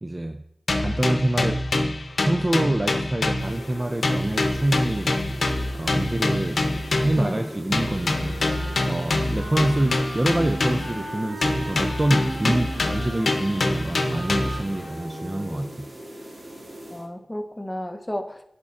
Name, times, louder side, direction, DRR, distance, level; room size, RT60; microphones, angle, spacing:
voice 1, 0.0-0.4 0.8-1.7 2.3-5.2 5.7-6.6 6.9-12.7 12.9-15.9 16.2-16.5, right 1 dB, 30° right, 6 dB, 0.3 m, -26 dB
sound 1, 0.7-3.8 4.0-7.3 7.7-11.1 11.4-14.7, left 2 dB, 80° left, 0.7 m, -25 dB
sound 2, 3.3-17.1, right 1 dB, 65° right, 2.1 m, -41 dB
voice 2, 7.2-7.5 12.4-12.5 16.9-18.4, left 1 dB, 15° left, 5 dB, 0.7 m, -32 dB
Wind instrument woodwind instrument, 7.9-15.8, right 2 dB, 90° right, 1.2 m, -37 dB
11.0 x 4.3 x 2.4 m, 0.76 s
cardioid pair, 45°, 0 cm